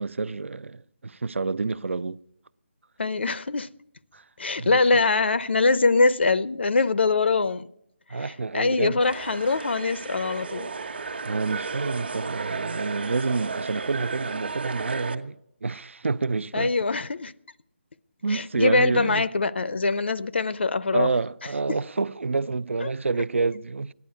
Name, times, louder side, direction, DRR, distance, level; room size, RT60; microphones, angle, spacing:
voice 1, 0.0-2.2 4.1-4.2 4.6-4.8 8.1-9.0 11.3-16.7 18.2-19.2 20.9-23.9, right 4 dB, 85° right, 0.5 m, -28 dB
voice 2, 3.0-3.7 4.4-7.7 8.1-10.7 16.5-17.3 18.3-21.1 22.8-22.9, left 3 dB, 65° left, 0.6 m, -23 dB
sound 1, 9.0-15.2, right 4 dB, 55° right, 1.1 m, -33 dB
14.5 x 10.5 x 8.2 m
hypercardioid pair, 170°, 7 cm